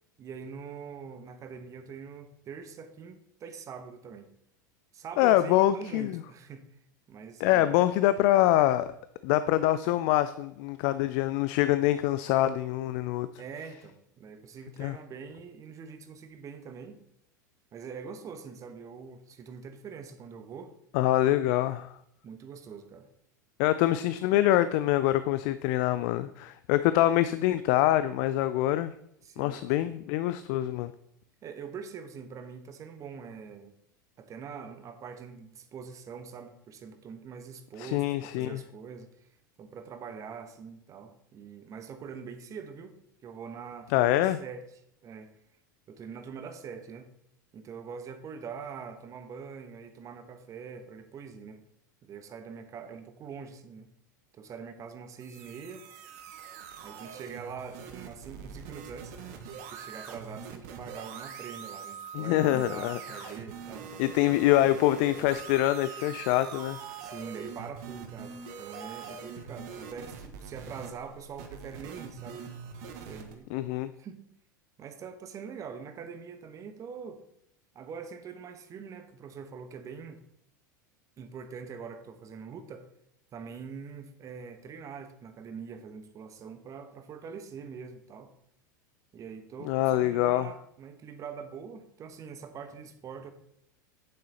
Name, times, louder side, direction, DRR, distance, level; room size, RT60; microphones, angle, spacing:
voice 1, 0.2-4.3 4.9-6.6 7.1-7.7 13.4-17.0 17.7-20.7 22.2-23.1 29.2-29.9 31.4-33.7 34.2-39.3 39.6-44.7 45.0-45.3 45.9-47.1 47.5-51.6 52.0-53.9 54.3-55.9 56.8-59.1 59.4-63.9 67.0-72.4 73.1-73.5 74.0-74.2 74.8-77.2 77.7-80.2 81.2-82.9 83.3-88.3 89.1-93.3, right 6 dB, 30° right, 9 dB, 1.2 m, -44 dB
voice 2, 5.2-6.2 7.4-8.9 9.2-13.3 14.8-15.0 20.9-21.9 23.6-28.9 29.4-30.9 37.8-38.6 43.9-44.4 62.1-63.0 64.0-66.8 73.5-73.9 89.6-90.5, left 14 dB, 50° left, 13 dB, 0.4 m, -25 dB
sound 1, 55.2-73.3, right 6 dB, 55° right, 1.4 m, -43 dB
8.8 x 7.5 x 4.3 m, 0.73 s
figure-of-eight pair, 85°, 11 cm